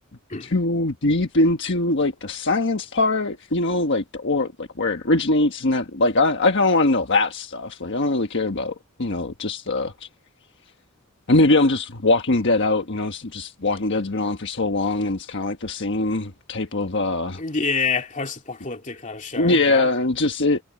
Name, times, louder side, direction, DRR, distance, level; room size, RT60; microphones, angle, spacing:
voice 1, 0.4-8.7 9.0-10.1 11.3-17.4 19.4-20.6, left 2 dB, 60° left, 1.4 m, -22 dB
voice 2, 17.4-19.9, left 4 dB, 35° left, 2.6 m, -27 dB
head